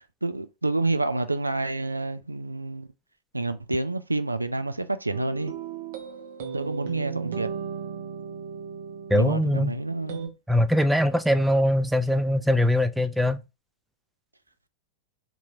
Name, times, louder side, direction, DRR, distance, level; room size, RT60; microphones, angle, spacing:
voice 1, 0.2-2.9 3.3-5.5 6.5-7.5 9.1-10.3, right 2 dB, 85° right, 0.3 m, -28 dB
sound 1, 5.1-10.3, right 6 dB, 55° right, 0.7 m, -36 dB
voice 2, 9.1-9.7 10.5-13.4, left 1 dB, 5° right, 0.3 m, -22 dB
3.7 x 3.0 x 2.4 m
figure-of-eight pair, 90°, 0 cm